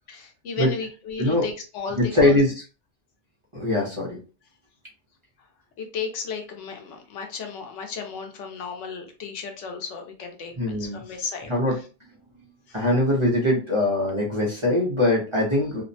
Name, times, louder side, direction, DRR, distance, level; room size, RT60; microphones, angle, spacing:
voice 1, 0.1-2.4 5.8-11.8 12.7-12.8, left 5 dB, 85° left, 4 dB, 1.0 m, -34 dB
voice 2, 2.0-2.5 3.5-4.2 10.6-11.0 11.5-11.8 12.7-15.8, left 1 dB, 30° right, -4 dB, 0.6 m, -22 dB
2.6 x 2.0 x 2.6 m, 0.34 s
omnidirectional pair, 1.2 m